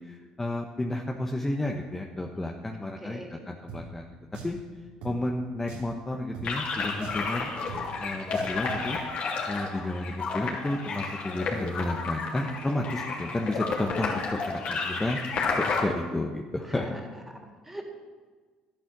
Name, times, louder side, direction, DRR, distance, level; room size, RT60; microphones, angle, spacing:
voice 1, 0.0-4.1 4.4-4.6 5.0-7.5 8.0-9.0 9.5-15.2 15.6-17.0, left 1 dB, 15° left, 1 dB, 1.2 m, -32 dB
voice 2, 2.7-3.5 16.7-17.0 17.3-18.0, right 1 dB, 10° right, 1 dB, 3.1 m, -42 dB
Drum, 3.7-3.8 4.3-4.6 5.0-5.2 5.7-5.9 6.3-6.5 7.0-7.3 7.7-7.8 8.3-8.9, right 4 dB, 80° right, 3.0 m, -40 dB
sound 1, 6.4-15.8, left 4 dB, 55° left, 3.1 m, -31 dB
11.5 x 10.5 x 6.1 m, 1.4 s
hypercardioid pair, 70°, 2 cm